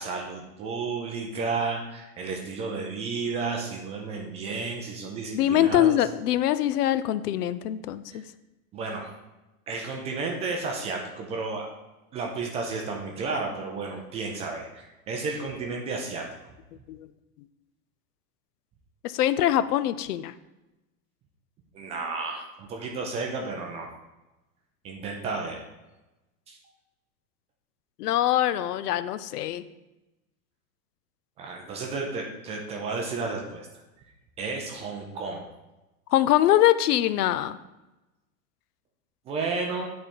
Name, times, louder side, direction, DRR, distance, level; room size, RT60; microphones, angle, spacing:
voice 1, 0.0-6.0 8.1-8.2 8.7-9.1 9.7-11.7 12.1-16.2 21.7-23.9 24.8-25.6 26.5-26.6 31.4-33.7 34.4-35.5 39.3-39.8, right 4 dB, 15° right, 1 dB, 0.3 m, -32 dB
voice 2, 5.3-8.2 16.9-17.1 19.0-20.3 28.0-29.6 36.1-37.6, left 12 dB, 85° left, 14 dB, 0.6 m, -23 dB
8.9 x 3.4 x 4.3 m, 1.0 s
supercardioid pair, 130°, 45 cm